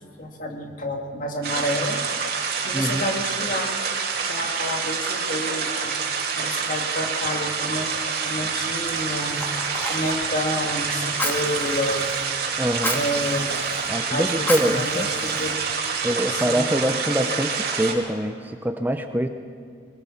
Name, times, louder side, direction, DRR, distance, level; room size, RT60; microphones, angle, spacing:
voice 1, 0.2-2.0 2.6-3.7 4.3-5.9 6.4-7.9 8.2-9.4 9.9-12.1 12.9-13.5 14.1-15.5 16.3-17.3, left 1 dB, 45° left, 3 dB, 2.3 m, -29 dB
sound 1, 1.4-17.9, right 5 dB, 55° right, 2.8 m, -27 dB
Fire, 8.8-16.0, left 1 dB, 10° left, 1.8 m, -34 dB
voice 2, 12.6-13.0 13.9-15.1 16.0-19.3, equal, 10° right, 6 dB, 0.7 m, -24 dB
21.0 x 19.5 x 7.2 m, 2.1 s
head